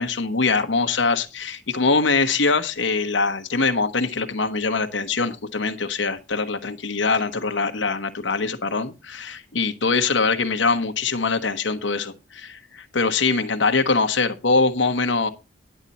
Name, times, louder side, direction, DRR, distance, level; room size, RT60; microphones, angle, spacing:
voice 1, 0.0-15.3, left 4 dB, 85° left, 1.1 m, -23 dB
10.5 x 8.1 x 4.2 m
head